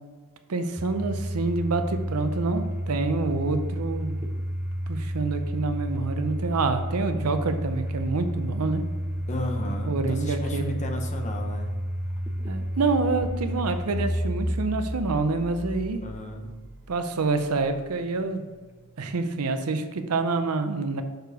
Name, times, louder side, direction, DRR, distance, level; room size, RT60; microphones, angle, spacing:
voice 1, 0.5-4.3 4.9-8.8 9.8-10.7 12.5-16.0 16.9-18.4 19.0-21.0, right 3 dB, 80° right, 8 dB, 0.7 m, -27 dB
Domestic sounds home sounds, 0.8-17.7, equal, 10° right, 0.7 m, -31 dB
voice 2, 9.3-11.7 16.0-16.5, left 1 dB, 35° left, 3 dB, 0.9 m, -34 dB
6.5 x 4.7 x 5.1 m, 1.4 s
head